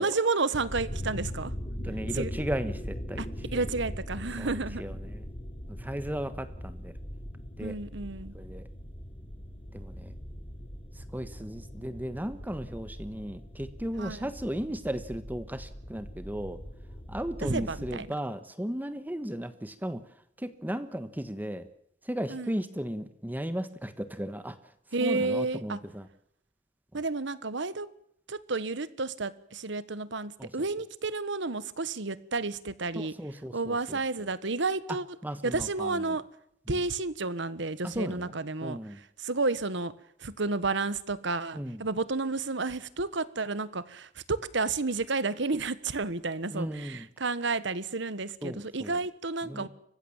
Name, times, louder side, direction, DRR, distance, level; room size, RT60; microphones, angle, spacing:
voice 1, 0.0-1.5 2.1-2.3 3.2-3.3 3.5-4.8 7.6-8.3 14.0-14.3 17.4-18.1 22.3-22.6 24.9-25.8 26.9-27.9 28.3-33.1 33.5-35.0 35.4-36.2 36.7-39.9 40.2-49.7, right 3 dB, 70° right, 15 dB, 1.4 m, -31 dB
sound 1, 0.6-18.0, equal, 35° left, 3.5 m, -40 dB
voice 2, 1.8-3.2 4.4-5.2 5.7-6.9 7.6-7.8 8.3-8.7 9.7-10.1 11.0-16.6 17.1-20.0 20.4-21.7 22.0-24.6 25.0-26.1 30.4-30.5 32.9-34.0 35.2-36.1 36.7-36.8 37.8-38.3 38.6-39.0 41.5-41.8 46.5-47.1 48.4-49.0 49.4-49.7, equal, 10° right, 11 dB, 1.3 m, -36 dB
29.5 x 15.5 x 7.3 m, 0.72 s
head